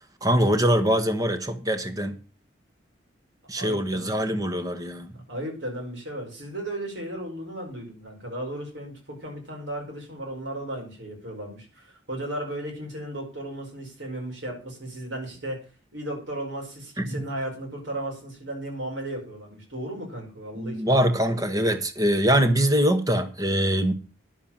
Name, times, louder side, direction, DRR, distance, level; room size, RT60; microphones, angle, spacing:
voice 1, 0.2-2.2 3.5-5.2 17.0-17.2 20.5-23.9, equal, 20° right, 1.2 m, -23 dB
voice 2, 3.5-4.2 4.4-4.9 5.3-15.6 15.9-21.4, right 1 dB, 80° right, 5.1 m, -35 dB
10.5 x 7.0 x 7.3 m
head